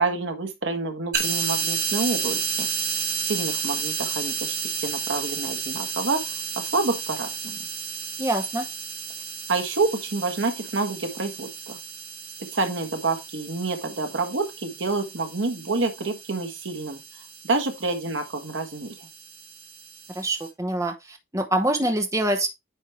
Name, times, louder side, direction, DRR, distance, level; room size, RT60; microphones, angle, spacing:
voice 1, 0.0-2.7 3.3-6.2 6.6-7.6 9.5-11.8 12.4-17.0 17.4-18.9, right 3 dB, 75° right, 1.4 m, -28 dB
sound 1, 1.1-20.5, right 6 dB, 55° right, 2.0 m, -32 dB
voice 2, 8.2-8.7 20.1-22.5, right 1 dB, 15° right, 0.9 m, -25 dB
9.3 x 4.5 x 3.3 m
head